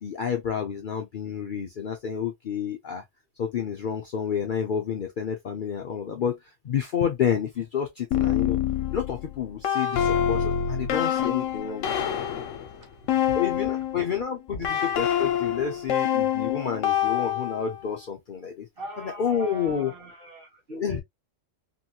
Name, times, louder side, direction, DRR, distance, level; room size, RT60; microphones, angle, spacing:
voice 1, 0.0-3.0 3.4-6.4 6.6-8.6 8.9-11.9 13.3-18.7 19.0-19.9 20.7-21.0, left 8 dB, 55° left, 0.6 m, -29 dB
sound 1, 8.1-14.0 14.6-17.8, left 9 dB, 80° left, 1.0 m, -26 dB
voice 2, 12.7-13.4 13.7-13.8 14.6-14.8 18.8-21.0, right 1 dB, 50° right, 1.3 m, -41 dB
3.0 x 2.8 x 2.3 m
omnidirectional pair, 1.3 m